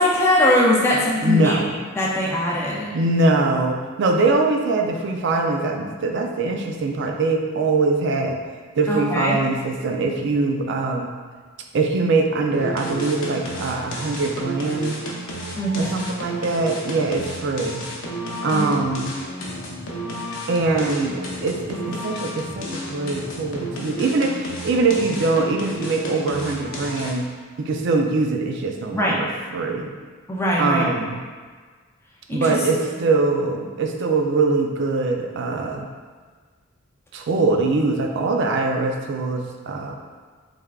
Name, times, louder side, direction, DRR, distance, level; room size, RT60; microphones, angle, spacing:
voice 1, 0.0-1.6 2.0-3.0 8.9-9.4 15.6-16.0 18.5-18.7 28.9-29.2 30.3-30.9 32.3-32.6, left 1 dB, 10° left, -4 dB, 0.4 m, -21 dB
voice 2, 1.2-1.7 2.9-8.4 8.8-11.1 11.7-15.0 15.8-17.8 18.4-19.1 20.5-27.3 27.6-29.9 30.6-31.2 32.3-35.9 37.1-39.9, right 3 dB, 60° right, 2 dB, 0.4 m, -22 dB
sound 1, 12.5-27.3, equal, 75° left, 0.6 m, -32 dB
3.5 x 3.3 x 2.3 m, 1.5 s
head